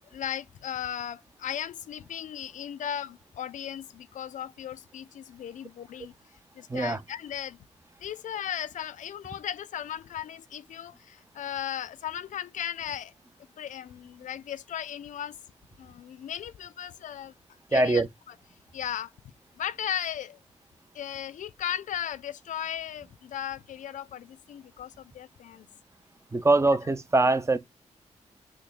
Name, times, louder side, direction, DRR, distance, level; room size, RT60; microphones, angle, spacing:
voice 1, 0.1-6.1 6.5-7.6 8.0-13.1 13.6-15.4 15.8-17.3 17.7-18.3 18.7-19.1 19.6-20.4 20.9-25.7 26.7-26.8, left 10 dB, 80° left, 0.4 m, -36 dB
voice 2, 17.7-18.1 26.3-27.6, right 2 dB, 20° right, 0.6 m, -22 dB
6.2 x 2.2 x 3.9 m
cardioid pair, 80°, 13 cm